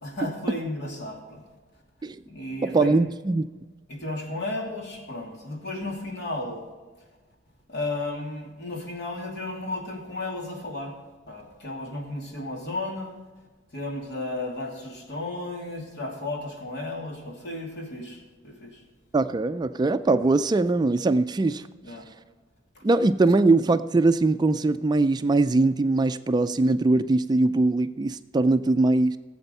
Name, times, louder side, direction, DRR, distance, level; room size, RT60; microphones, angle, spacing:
voice 1, 0.0-1.4 2.2-2.9 3.9-6.6 7.7-11.0 11.3-13.2 13.7-18.8 21.8-22.1 22.7-22.8, left 2 dB, 65° left, 1 dB, 2.7 m, -34 dB
voice 2, 2.6-3.5 19.1-21.6 22.8-29.2, right 2 dB, 20° right, 12 dB, 0.3 m, -21 dB
16.5 x 7.9 x 5.4 m, 1.3 s
head